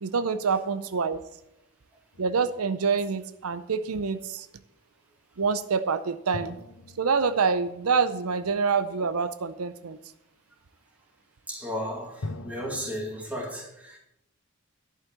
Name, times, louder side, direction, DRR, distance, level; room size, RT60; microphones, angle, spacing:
voice 1, 0.0-1.2 2.2-4.5 5.4-6.6 7.0-10.0, right 5 dB, 85° right, 0.6 m, -26 dB
sound 1, 2.1-3.5 6.3-8.9 12.2-13.2, left 2 dB, 85° left, 0.9 m, -43 dB
voice 2, 11.5-14.0, equal, 5° right, 2.2 m, -34 dB
11.5 x 5.5 x 7.3 m
head